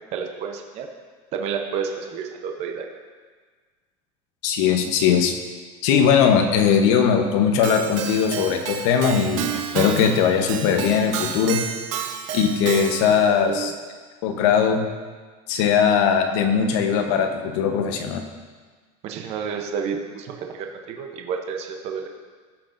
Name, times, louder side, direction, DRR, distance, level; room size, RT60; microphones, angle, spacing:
voice 1, 0.1-0.9 1.3-2.9 13.2-13.7 19.0-22.1, right 6 dB, 45° right, 3 dB, 0.8 m, -30 dB
voice 2, 4.4-5.4 5.8-11.6 12.3-13.7 14.2-14.8 15.5-18.2, left 7 dB, 70° left, 5 dB, 1.0 m, -20 dB
Keyboard (musical), 7.6-13.3, right 7 dB, 90° right, 0.8 m, -30 dB
14.5 x 5.9 x 2.6 m, 1.5 s
supercardioid pair, 145°, 16 cm